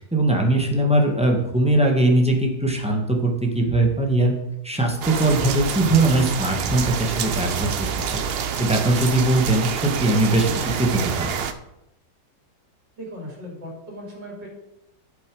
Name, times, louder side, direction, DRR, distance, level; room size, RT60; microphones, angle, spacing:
voice 1, 0.0-4.3 4.6-7.7 8.1-8.2 8.6-10.5 10.8-11.3, right 1 dB, 5° right, 0 dB, 1.6 m, -20 dB
sound 1, 5.0-11.5, right 7 dB, 70° right, 0.5 m, -27 dB
voice 2, 13.0-14.5, left 1 dB, 90° right, -2 dB, 4.0 m, -37 dB
11.0 x 7.4 x 4.9 m, 0.87 s
omnidirectional pair, 1.9 m